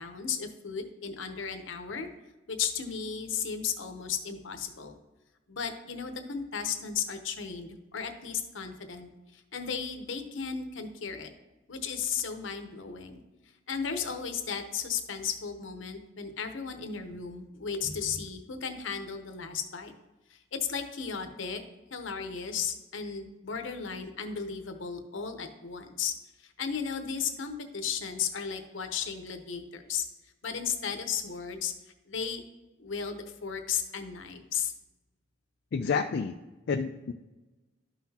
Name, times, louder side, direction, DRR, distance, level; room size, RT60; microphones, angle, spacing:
voice 1, 0.0-2.1 2.5-5.0 5.5-11.3 11.7-13.2 13.7-19.9 20.3-21.6 21.9-26.1 26.4-30.0 30.4-31.7 32.1-32.4 32.8-34.7, left 7 dB, 75° left, 7 dB, 0.9 m, -35 dB
voice 2, 35.7-36.4 36.7-37.1, left 5 dB, 60° left, 5 dB, 0.4 m, -29 dB
12.0 x 5.8 x 2.9 m, 1.1 s
head